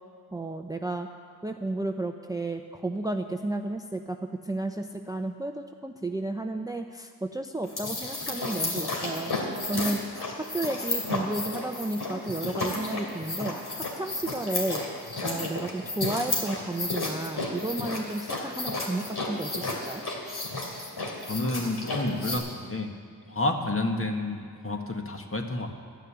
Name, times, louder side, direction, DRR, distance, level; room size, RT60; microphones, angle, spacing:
voice 1, 0.3-1.1 1.4-4.2 4.4-9.3 9.7-14.9 15.2-20.0, right 2 dB, 10° right, 5 dB, 0.7 m, -32 dB
sound 1, 7.6-22.4, left 2 dB, 65° left, 2.9 m, -32 dB
voice 2, 21.3-22.9 23.3-25.7, left 2 dB, 30° left, 3 dB, 1.6 m, -30 dB
13.0 x 6.6 x 9.9 m, 2.1 s
cardioid pair, 45°, 42 cm